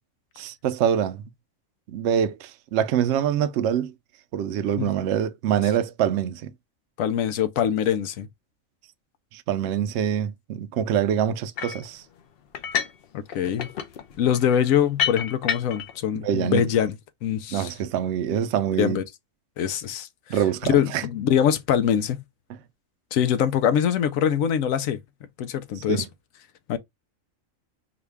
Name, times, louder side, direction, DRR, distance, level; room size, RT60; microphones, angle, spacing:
voice 1, 0.4-1.2 1.9-3.9 4.3-6.5 9.3-12.0 16.2-16.6 17.5-19.0 20.3-21.0 25.9-26.1, right 9 dB, 65° right, 0.8 m, -25 dB
voice 2, 7.0-8.3 13.1-13.7 14.2-17.0 17.2-17.7 18.8-19.0 19.6-20.4 20.7-22.2 23.1-25.0 25.4-26.1 26.7-26.8, left 9 dB, 85° left, 1.0 m, -23 dB
sound 1, 11.6-11.9 12.5-13.0 13.3-15.9, left 8 dB, 60° left, 0.6 m, -29 dB
4.7 x 2.3 x 3.3 m
omnidirectional pair, 1.4 m